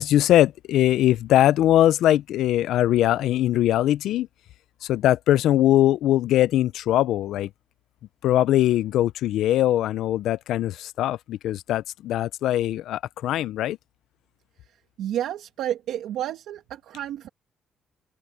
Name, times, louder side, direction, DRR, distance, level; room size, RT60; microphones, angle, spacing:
voice 1, 0.0-4.3 4.8-7.5 8.2-13.8, left 13 dB, 80° left, 0.4 m, -21 dB
voice 2, 14.6-17.3, right 11 dB, 85° right, 1.4 m, -31 dB
cardioid pair, 90°, 0 cm